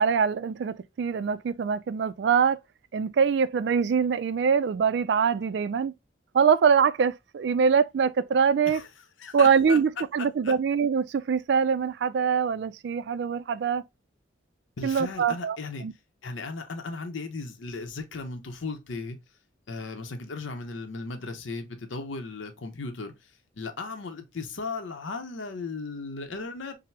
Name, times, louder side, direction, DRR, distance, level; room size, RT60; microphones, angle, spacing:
voice 1, 0.0-2.6 2.9-5.9 6.3-8.8 9.3-13.8 14.8-15.9, right 6 dB, 65° right, 0.3 m, -24 dB
voice 2, 9.2-9.8 10.2-10.5 14.8-15.9 16.2-19.2 19.7-26.8, left 3 dB, 90° left, 0.7 m, -36 dB
5.7 x 2.0 x 3.2 m
head